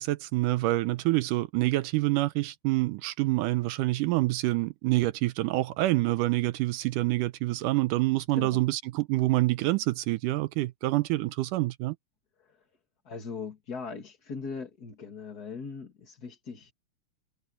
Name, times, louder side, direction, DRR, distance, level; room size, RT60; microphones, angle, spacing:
voice 1, 0.0-12.0, right 19 dB, 80° right, 2.0 m, -27 dB
voice 2, 13.0-16.7, left 5 dB, 30° left, 2.2 m, -40 dB
omnidirectional pair, 4.0 m